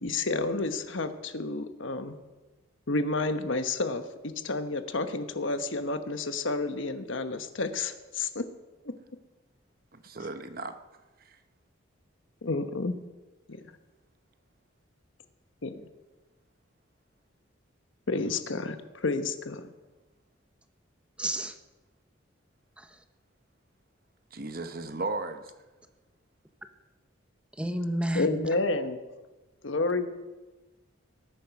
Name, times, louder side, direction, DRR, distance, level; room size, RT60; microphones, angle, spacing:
voice 1, 0.0-2.2 2.9-8.5 8.9-9.0 12.4-12.9 15.6-15.8 18.1-19.7 28.1-29.0 29.6-30.1, left 3 dB, 75° left, 1.1 m, -30 dB
voice 2, 9.9-10.8 11.2-11.4 24.3-25.5, right 3 dB, 45° right, 1.0 m, -36 dB
voice 3, 21.2-21.6 22.8-23.0 27.6-28.6, right 1 dB, 5° right, 0.9 m, -31 dB
20.0 x 9.2 x 5.9 m
head